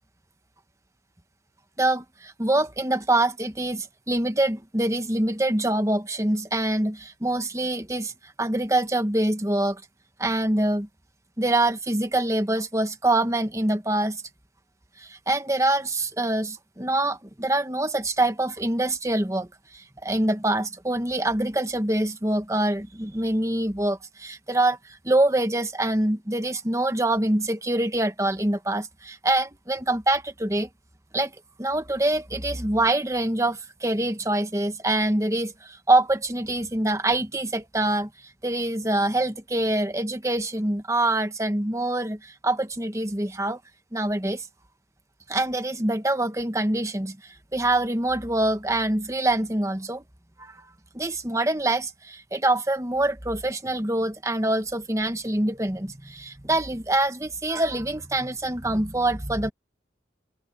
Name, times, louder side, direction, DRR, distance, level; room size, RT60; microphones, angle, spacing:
voice 1, 1.8-9.8 10.2-10.9 11.4-14.2 15.0-30.7 31.1-31.3 31.6-38.1 38.4-43.6 43.9-44.5 45.3-50.0 50.4-50.6 50.9-59.5, right 1 dB, 15° right, 1.4 m, -25 dB
open air
head